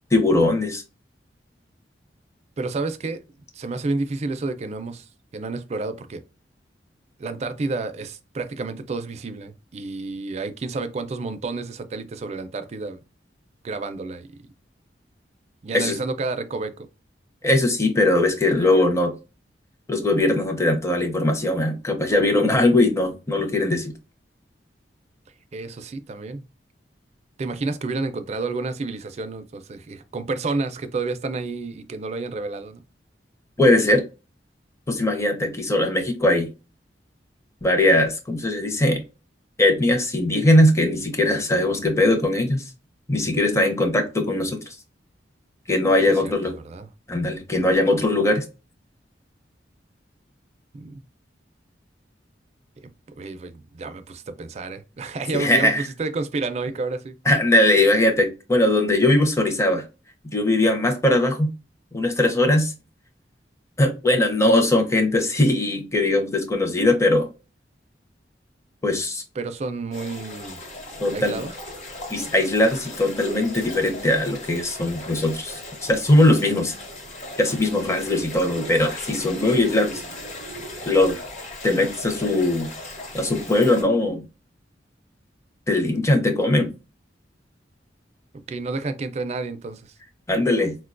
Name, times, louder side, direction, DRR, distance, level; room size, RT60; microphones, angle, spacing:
voice 1, 0.1-0.8 15.7-16.0 17.4-19.1 19.9-23.9 33.6-34.0 34.9-36.5 37.6-39.0 39.6-42.6 43.1-44.6 45.7-46.5 47.1-48.4 55.3-55.8 57.3-59.8 60.3-61.5 61.9-62.7 63.8-67.3 68.8-69.2 71.0-71.4 72.1-76.7 77.4-80.0 80.9-81.2 81.6-82.7 83.1-84.2 85.7-86.7 90.3-90.8, left 1 dB, 15° left, 0.6 m, -20 dB
voice 2, 2.6-3.2 3.5-6.2 7.2-13.0 13.6-14.3 15.6-16.9 25.5-26.5 27.4-32.8 46.2-46.9 50.7-51.0 53.2-57.1 69.4-70.6 71.1-71.5 88.5-89.8, right 3 dB, 40° right, 0.4 m, -30 dB
sound 1, 69.9-83.8, left 1 dB, 45° left, 0.9 m, -37 dB
4.3 x 2.2 x 2.4 m
head